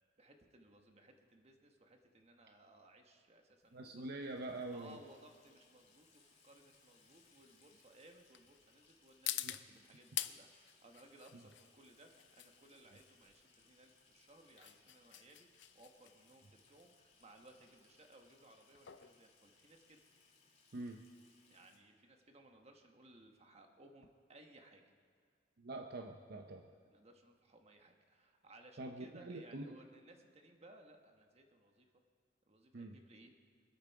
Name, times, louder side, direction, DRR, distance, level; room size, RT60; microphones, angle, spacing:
voice 1, 0.2-4.1 4.7-20.0 21.5-25.0 26.6-31.9 32.4-33.3, right 2 dB, 35° right, 4 dB, 1.4 m, -62 dB
sound 1, 3.6-20.3, left 14 dB, 70° left, 0.5 m, -49 dB
voice 2, 3.7-5.0 9.4-9.5 20.7-21.0 25.6-26.7 28.8-29.7 32.7-33.0, right 2 dB, 60° right, 4 dB, 0.7 m, -45 dB
Water tap faucet / Sink (filling or washing), 3.9-21.8, left 4 dB, 35° left, 2.3 m, -70 dB
24.0 x 8.6 x 4.7 m, 2.1 s
head